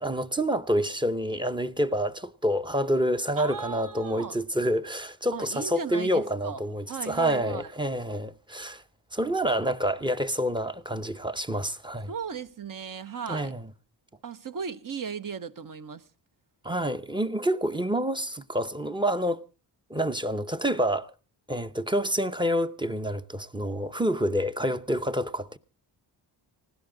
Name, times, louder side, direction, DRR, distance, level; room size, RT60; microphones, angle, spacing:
voice 1, 0.0-8.8 9.1-12.1 13.3-13.7 16.6-19.4 19.9-21.1 21.5-25.6, equal, 10° right, 0.7 m, -28 dB
voice 2, 3.4-4.4 5.3-6.6 6.9-7.7 12.1-13.5 14.2-16.1, right 6 dB, 45° right, 0.9 m, -36 dB
19.5 x 16.5 x 3.8 m
cardioid pair, 90°, 44 cm